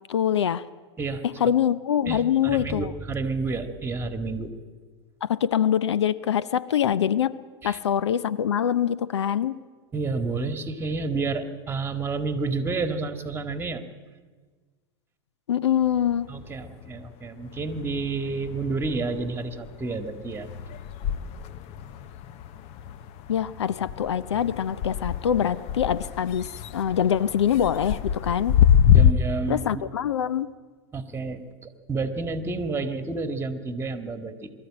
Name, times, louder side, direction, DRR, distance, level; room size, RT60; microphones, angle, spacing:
voice 1, 0.1-0.6 1.4-2.9 5.2-7.4 7.6-9.6 15.5-16.3 23.3-28.6 29.5-30.5, left 9 dB, 85° left, 18 dB, 0.6 m, -24 dB
voice 2, 2.1-4.5 7.6-7.8 9.9-13.8 16.3-20.5 28.9-29.8 30.9-34.5, right 3 dB, 15° right, 8 dB, 2.0 m, -30 dB
sound 1, 15.9-17.1 17.4-29.1, left 9 dB, 50° left, 0.9 m, -26 dB
22.5 x 13.5 x 8.8 m, 1.5 s
hypercardioid pair, 95°, 14 cm